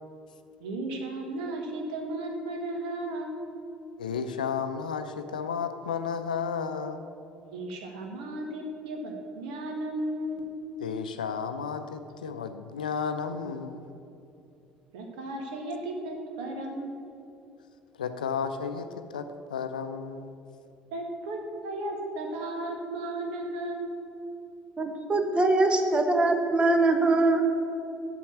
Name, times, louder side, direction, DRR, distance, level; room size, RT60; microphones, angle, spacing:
voice 1, 0.6-3.4 7.5-10.6 14.9-17.0 20.9-24.0, right 1 dB, 65° right, 2 dB, 1.5 m, -35 dB
voice 2, 4.0-7.1 10.8-13.9 18.0-20.4, left 6 dB, 75° left, 9 dB, 0.5 m, -33 dB
voice 3, 24.8-27.4, right 2 dB, 25° right, 6 dB, 1.3 m, -23 dB
8.4 x 6.7 x 8.5 m, 2.7 s
figure-of-eight pair, 55°, 4 cm